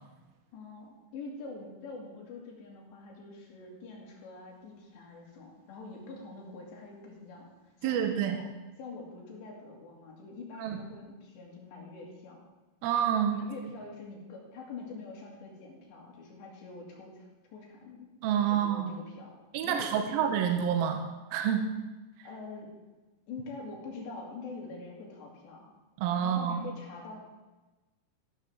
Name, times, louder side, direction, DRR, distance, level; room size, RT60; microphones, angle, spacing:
voice 1, 0.5-7.5 7.8-8.0 8.4-8.5 8.8-12.5 13.3-18.1 18.5-19.4 19.6-20.2 22.2-22.7 23.3-25.7 26.2-27.2, left 3 dB, 90° left, -2 dB, 4.8 m, -45 dB
voice 2, 7.8-8.4 10.6-10.8 12.8-13.4 18.2-19.0 19.5-21.0 21.3-21.7 26.0-26.7, right 8 dB, 75° right, 4 dB, 2.5 m, -28 dB
14.0 x 12.5 x 3.6 m, 1.2 s
omnidirectional pair, 4.9 m